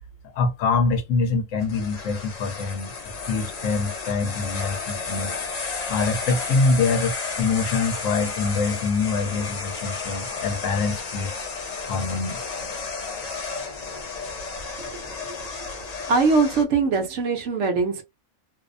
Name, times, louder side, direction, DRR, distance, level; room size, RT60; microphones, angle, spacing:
voice 1, 0.3-2.9 3.3-5.3 5.9-11.5 11.8-12.4, left 4 dB, 75° left, 1.0 m, -25 dB
sound 1, 1.6-16.6, left 4 dB, 55° left, 0.4 m, -32 dB
voice 2, 16.1-18.0, right 4 dB, 65° right, 0.9 m, -21 dB
2.6 x 2.0 x 2.5 m
omnidirectional pair, 1.4 m